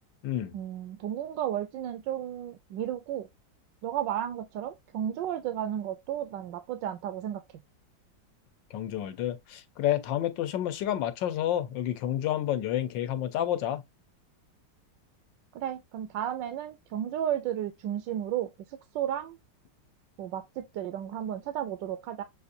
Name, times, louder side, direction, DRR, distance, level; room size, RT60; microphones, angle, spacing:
voice 1, 0.5-3.3 3.8-7.4 15.5-19.4 20.2-22.2, right 10 dB, 80° right, 1.3 m, -33 dB
voice 2, 8.7-13.8, left 12 dB, 85° left, 1.4 m, -29 dB
7.0 x 2.6 x 2.6 m
omnidirectional pair, 2.0 m